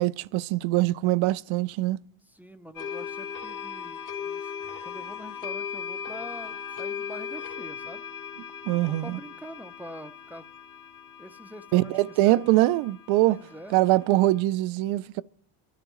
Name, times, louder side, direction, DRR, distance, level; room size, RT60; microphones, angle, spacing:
voice 1, 0.0-2.0 8.7-9.2 11.7-13.4 13.7-15.2, right 17 dB, 70° right, 0.6 m, -23 dB
voice 2, 2.3-4.5 4.8-8.0 8.7-10.4 11.2-12.4 13.2-13.8, equal, 5° right, 0.5 m, -44 dB
sound 1, 2.8-14.4, left 7 dB, 40° left, 1.7 m, -38 dB
28.5 x 12.5 x 3.1 m
cardioid pair, 120°, 49 cm